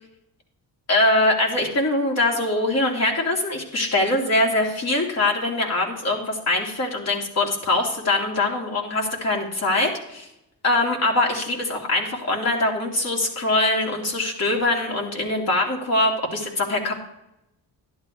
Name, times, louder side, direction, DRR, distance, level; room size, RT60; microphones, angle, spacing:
voice 1, 0.9-10.3 10.6-16.9, left 2 dB, 40° left, -1 dB, 3.3 m, -23 dB
12.0 x 11.5 x 3.3 m, 0.86 s
cardioid pair, 100°, 39 cm